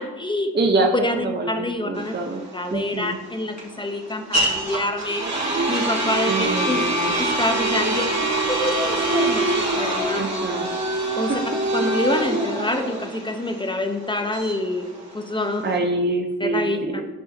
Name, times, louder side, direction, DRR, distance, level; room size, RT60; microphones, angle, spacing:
voice 1, 0.0-0.5 0.9-2.1 2.5-5.2 5.7-6.8 7.2-10.2 11.2-11.3 11.7-14.9 15.1-15.6 16.4-17.0, left 1 dB, 10° left, 5 dB, 1.0 m, -26 dB
voice 2, 0.5-2.4 2.7-3.2 6.3-7.1 10.1-10.7 11.1-11.4 11.8-12.0 15.6-17.0, right 2 dB, 25° right, 1 dB, 1.0 m, -25 dB
sound 1, 1.9-15.8, right 2 dB, 45° right, 2.6 m, -25 dB
11.0 x 5.5 x 2.9 m, 1.2 s
cardioid pair, 45°, 39 cm